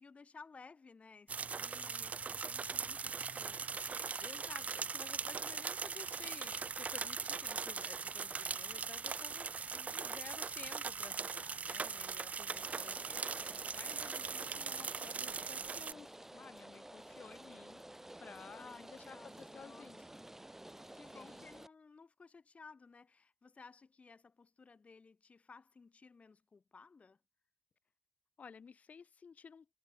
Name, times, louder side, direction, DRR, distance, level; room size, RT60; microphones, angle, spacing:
voice 1, 0.0-3.9 9.6-10.1 18.6-19.9 20.2-20.4 20.9-27.2, left 4 dB, 65° left, 2.6 m, -58 dB
sound 1, 1.3-15.9, right 5 dB, 75° right, 0.5 m, -40 dB
voice 2, 4.2-9.5 9.9-17.8 18.2-20.0 21.1-21.5 28.4-29.7, left 6 dB, 85° left, 0.7 m, -54 dB
Rain, 12.5-21.7, right 1 dB, 15° right, 0.6 m, -53 dB
wide cardioid pair, 75°, 2 cm